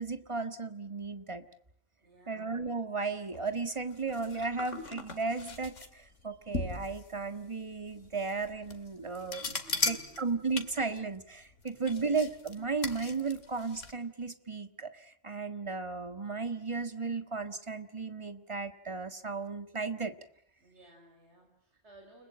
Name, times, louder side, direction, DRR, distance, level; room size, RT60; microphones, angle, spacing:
voice 1, 0.0-1.4 2.3-9.5 9.8-20.1, right 4 dB, 25° right, 9 dB, 1.7 m, -35 dB
voice 2, 2.0-2.5 9.4-10.7 11.7-12.1 20.6-22.3, right 1 dB, 60° right, 2 dB, 5.0 m, -58 dB
sound 1, 3.3-13.9, left 3 dB, 70° left, 2.6 m, -39 dB
30.0 x 20.5 x 8.8 m, 0.67 s
omnidirectional pair, 1.3 m